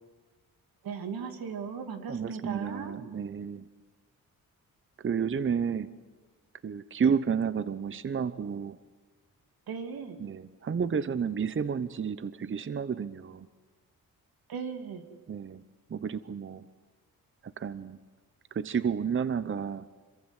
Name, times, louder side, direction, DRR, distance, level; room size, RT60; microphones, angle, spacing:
voice 1, 0.8-2.9 9.7-10.2 14.5-15.0, right 6 dB, 85° right, 7 dB, 2.8 m, -37 dB
voice 2, 2.1-3.7 5.0-5.9 6.6-8.8 10.2-13.5 15.3-15.6 15.9-16.7 17.4-18.0 18.5-19.9, right 6 dB, 35° right, 15 dB, 0.8 m, -31 dB
26.0 x 23.5 x 8.1 m, 1.3 s
cardioid pair, 100°, 35 cm